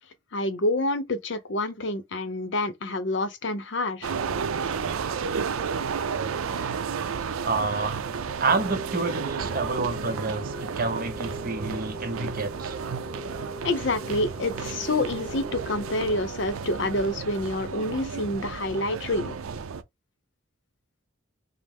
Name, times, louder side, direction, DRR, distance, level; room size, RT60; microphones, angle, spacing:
voice 1, 0.3-4.1 13.6-19.4, left 2 dB, 60° left, 0.7 m, -28 dB
sound 1, 4.0-19.8, right 6 dB, 85° right, 0.5 m, -32 dB
voice 2, 7.4-8.0 8.4-12.7, right 3 dB, 45° right, 0.7 m, -28 dB
sound 2, 8.5-16.2, right 1 dB, 15° right, 1.4 m, -40 dB
5.2 x 2.0 x 3.5 m
head